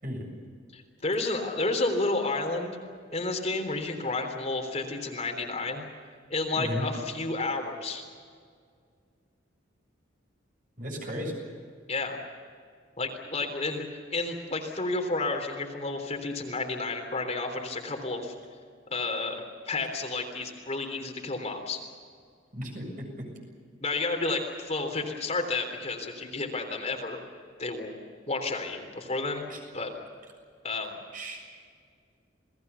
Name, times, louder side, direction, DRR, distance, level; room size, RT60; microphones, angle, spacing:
voice 1, 0.7-2.8 3.1-5.8 6.3-8.0 11.9-12.2 13.0-18.3 18.9-21.8 23.8-27.2 27.6-28.0 28.3-29.4 29.7-29.9 30.6-31.0, left 3 dB, 35° left, 3 dB, 3.5 m, -31 dB
voice 2, 6.6-6.9 10.8-11.3 22.5-23.1 29.5-29.6 31.1-31.4, equal, 45° right, 2 dB, 7.4 m, -34 dB
28.5 x 19.5 x 7.0 m, 2.1 s
head